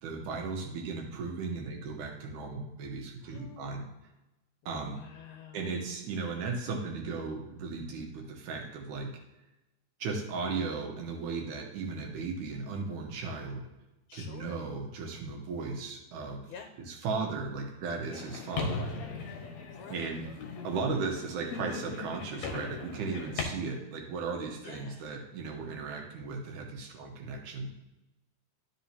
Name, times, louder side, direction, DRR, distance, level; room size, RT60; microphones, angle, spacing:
voice 1, 0.0-3.9 4.7-5.0 5.5-9.1 10.0-13.7 14.1-16.5 16.9-19.0 19.9-20.3 20.6-27.7, right 4 dB, 80° right, 1 dB, 2.5 m, -36 dB
voice 2, 3.2-3.8 4.6-5.7 14.1-14.6 16.5-16.7 19.7-20.1 24.6-25.0, left 7 dB, 85° left, 5 dB, 2.1 m, -49 dB
sound 1, 18.1-23.4, left 4 dB, 65° left, 2.3 m, -38 dB
12.0 x 5.4 x 2.7 m, 0.99 s
omnidirectional pair, 3.5 m